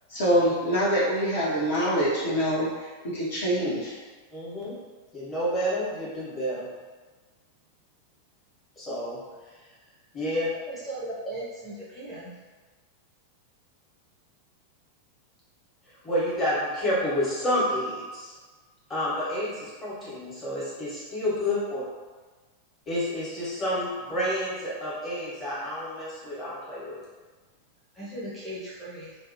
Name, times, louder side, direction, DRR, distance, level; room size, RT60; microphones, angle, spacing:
voice 1, 0.1-2.9 3.1-3.9, equal, 55° left, -7 dB, 0.8 m, -25 dB
voice 2, 4.3-4.7 5.1-6.7 8.8-9.2 10.1-10.5 16.0-18.3 18.9-21.8 22.9-27.0, equal, 25° left, -8 dB, 1.1 m, -29 dB
voice 3, 10.7-12.3 27.9-29.2, right 1 dB, 5° left, -9 dB, 0.6 m, -37 dB
2.5 x 2.1 x 2.7 m, 1.4 s
figure-of-eight pair, 90°, 0 cm